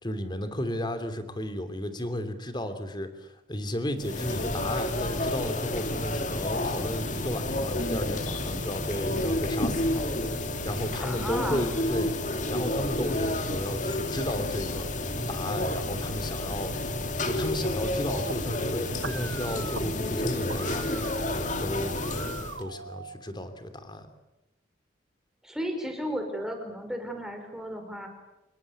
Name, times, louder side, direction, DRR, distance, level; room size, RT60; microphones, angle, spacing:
voice 1, 0.0-10.1 10.6-12.1 12.5-14.9 15.3-16.7 17.2-20.8 21.3-24.1, left 1 dB, 25° left, 9 dB, 3.0 m, -34 dB
sound 1, 4.0-22.6, left 1 dB, 40° left, 2.4 m, -30 dB
voice 2, 11.0-11.7 25.4-28.1, equal, 5° right, 4 dB, 5.1 m, -34 dB
sound 2, 18.1-23.1, right 4 dB, 70° right, 1.2 m, -40 dB
26.5 x 21.5 x 8.6 m, 0.98 s
head